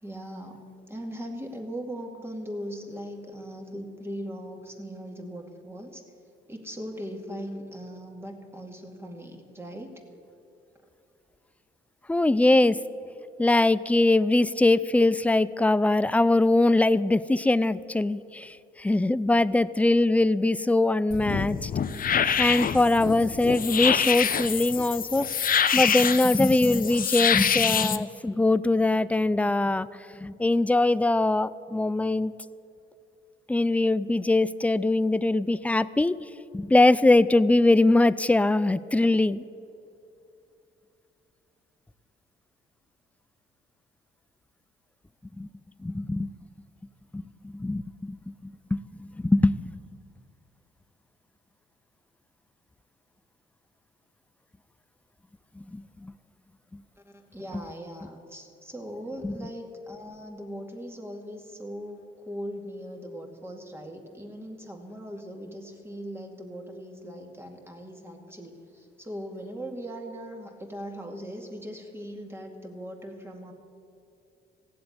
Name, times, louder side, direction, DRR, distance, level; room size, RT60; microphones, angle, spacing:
voice 1, 0.0-6.0 6.5-9.9 57.3-73.5, equal, 10° right, 2 dB, 2.2 m, -39 dB
voice 2, 12.1-12.8 13.4-21.7 22.4-25.3 25.7-29.9 30.1-32.3 33.5-36.2 36.5-39.4 45.4-45.5 45.8-46.3 47.1-49.7 55.6-56.1 59.2-59.5, left 2 dB, 5° left, 17 dB, 0.4 m, -22 dB
sound 1, 21.1-28.0, left 8 dB, 45° left, 0.7 m, -26 dB
16.0 x 7.7 x 9.6 m, 2.8 s
cardioid pair, 90°, 20 cm